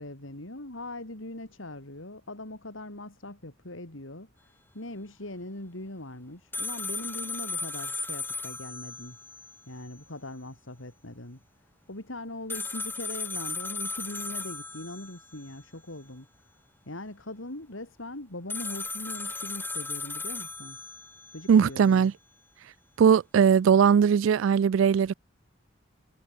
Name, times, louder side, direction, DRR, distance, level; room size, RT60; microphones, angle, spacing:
voice 1, 0.0-9.2 9.7-11.4 11.9-16.3 16.9-20.8 21.3-22.1, left 1 dB, 80° left, 4.0 m, -41 dB
sound 1, 6.5-9.6 9.9-10.0 12.5-15.5 18.5-21.5, left 3 dB, 10° left, 4.0 m, -36 dB
voice 2, 21.5-22.1 23.0-25.1, right 7 dB, 70° right, 0.3 m, -20 dB
head